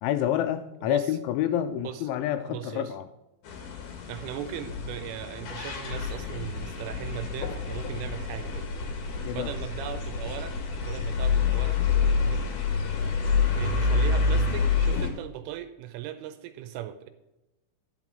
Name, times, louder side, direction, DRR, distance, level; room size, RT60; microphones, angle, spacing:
voice 1, 0.0-3.0 9.2-9.5, left 11 dB, 85° left, 9 dB, 2.7 m, -28 dB
voice 2, 0.8-1.2 1.8-2.1 2.5-2.9 4.1-8.7 9.3-11.8 12.2-12.4 13.4-17.1, right 11 dB, 85° right, 9 dB, 3.0 m, -38 dB
sound 1, 3.4-15.1, left 5 dB, 65° left, 2.1 m, -28 dB
11.0 x 6.1 x 6.0 m, 0.95 s
omnidirectional pair, 5.9 m